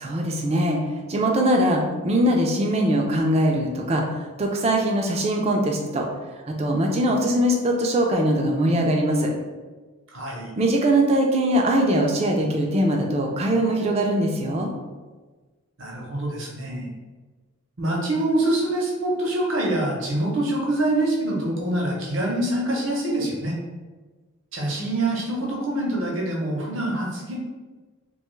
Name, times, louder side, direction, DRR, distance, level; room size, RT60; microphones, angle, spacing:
voice 1, 0.0-0.8 1.1-6.1 6.5-9.3 10.6-14.7, right 1 dB, 30° right, 1 dB, 0.3 m, -21 dB
voice 2, 10.1-10.5 15.8-16.9 17.8-23.6 24.5-27.4, right 1 dB, 55° right, -2 dB, 0.7 m, -25 dB
2.8 x 2.2 x 3.1 m, 1.3 s
head